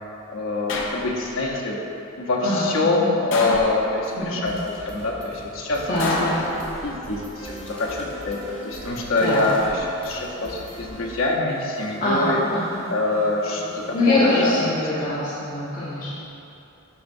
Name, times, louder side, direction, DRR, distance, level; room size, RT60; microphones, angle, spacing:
voice 1, 0.3-1.8 2.2-4.5 4.9-5.8 6.2-6.3 6.8-12.4 12.9-14.5, left 2 dB, 80° left, -3 dB, 1.0 m, -25 dB
sound 1, 0.7-1.5 3.3-4.3 6.0-7.1 8.5-9.1, left 2 dB, 65° left, 0.6 m, -29 dB
voice 2, 2.4-2.8 4.2-4.4 5.9-6.4 9.2-9.5 12.0-12.8 13.9-16.1, left 1 dB, 45° left, -13 dB, 1.3 m, -23 dB
sound 2, 4.0-4.1 4.5-10.9, equal, 5° left, 1.0 m, -43 dB
sound 3, 5.8-14.5, right 1 dB, 85° right, 1.2 m, -42 dB
11.5 x 4.3 x 2.6 m, 2.9 s
head